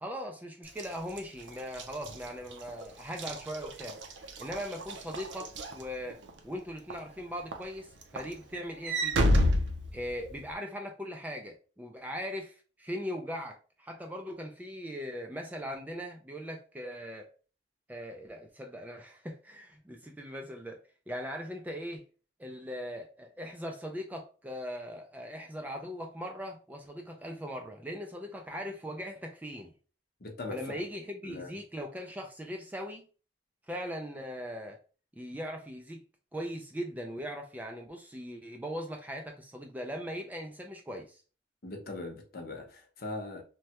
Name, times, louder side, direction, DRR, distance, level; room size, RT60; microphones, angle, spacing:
voice 1, 0.0-4.0 4.4-9.3 9.9-17.3 17.9-20.8 21.1-22.0 22.4-29.7 30.5-33.0 33.7-34.8 35.1-36.0 36.3-41.2, equal, 10° right, 0.3 m, -40 dB
Walk footsteps / Slam, 0.7-6.4 6.9-7.2 7.5-10.5, equal, 75° right, 0.5 m, -31 dB
voice 2, 30.2-30.8 31.2-31.6 41.6-43.4, left 2 dB, 55° left, 0.7 m, -40 dB
3.2 x 2.2 x 2.8 m
head